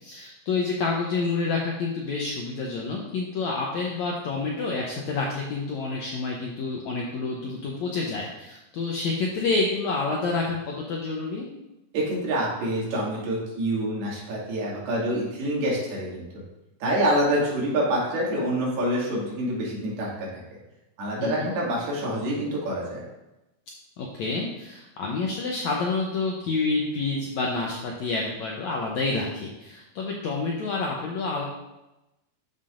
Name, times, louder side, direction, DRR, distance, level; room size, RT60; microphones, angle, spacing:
voice 1, 0.0-11.5 21.2-21.5 24.0-31.4, left 3 dB, 85° left, -2 dB, 1.6 m, -28 dB
voice 2, 11.9-16.2 16.8-20.4 21.0-23.0, right 1 dB, 80° right, -5 dB, 4.1 m, -26 dB
12.5 x 5.8 x 2.5 m, 0.97 s
omnidirectional pair, 4.4 m